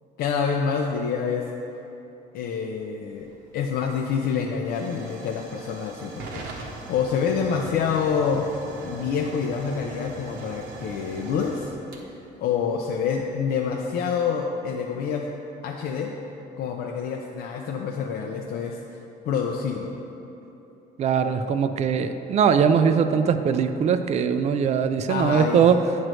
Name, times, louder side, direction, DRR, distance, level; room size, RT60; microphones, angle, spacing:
voice 1, 0.2-1.4 2.3-3.3 3.5-8.4 8.8-11.7 12.0-12.2 12.4-15.3 15.6-16.1 16.6-18.8 19.2-19.9 25.1-25.6, left 6 dB, 70° left, 1 dB, 0.5 m, -27 dB
Hiss / Fire / Tick, 3.0-13.4, right 3 dB, 75° right, 1.0 m, -42 dB
voice 2, 21.0-25.8, right 7 dB, 40° right, 9 dB, 0.4 m, -21 dB
8.9 x 3.1 x 6.2 m, 3.0 s
cardioid pair, 110°, 17 cm